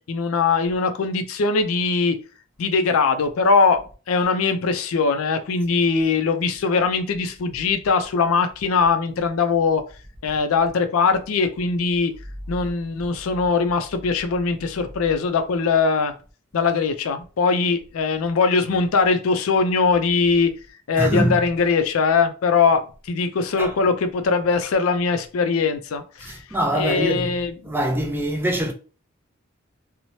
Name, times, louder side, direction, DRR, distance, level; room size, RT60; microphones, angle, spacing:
voice 1, 0.1-2.2 2.6-3.8 4.1-9.8 10.2-12.1 12.5-16.1 16.5-20.5 20.9-26.4 26.7-27.7, left 4 dB, 80° left, 0.4 m, -21 dB
voice 2, 21.0-21.5 23.6-23.7 26.2-27.4 27.6-28.7, right 1 dB, 10° right, 0.4 m, -23 dB
3.0 x 2.0 x 2.6 m
head